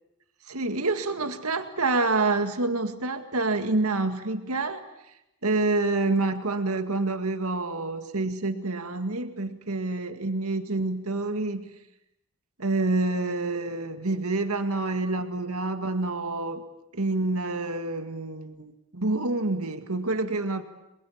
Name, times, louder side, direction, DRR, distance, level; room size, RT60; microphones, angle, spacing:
voice 1, 0.5-4.9 5.4-11.7 12.6-16.6 16.9-20.6, right 2 dB, 80° right, 8 dB, 2.0 m, -27 dB
28.0 x 22.0 x 8.6 m, 0.86 s
head